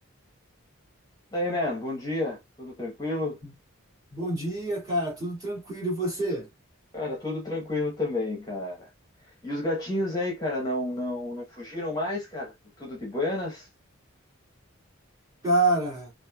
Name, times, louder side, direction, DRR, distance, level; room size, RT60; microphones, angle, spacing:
voice 1, 1.3-3.4 6.9-8.9 9.4-12.5 12.8-13.7, left 2 dB, 15° left, 1.0 m, -30 dB
voice 2, 4.1-6.5 15.4-16.1, right 2 dB, 15° right, 2.0 m, -27 dB
4.2 x 2.5 x 2.2 m
head